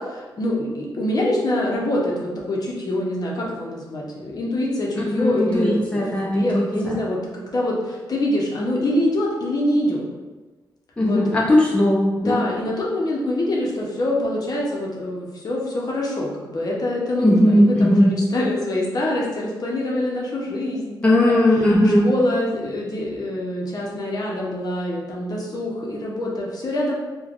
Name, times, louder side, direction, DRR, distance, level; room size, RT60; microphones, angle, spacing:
voice 1, 0.0-6.1 6.3-10.1 11.0-11.2 12.2-21.4 21.8-26.9, left 1 dB, 50° left, -3 dB, 0.7 m, -25 dB
voice 2, 5.0-6.9 11.0-12.4 17.2-18.1 21.0-22.1, left 1 dB, 15° left, -4 dB, 0.5 m, -18 dB
3.2 x 2.1 x 2.4 m, 1.2 s
cardioid pair, 85°, 8 cm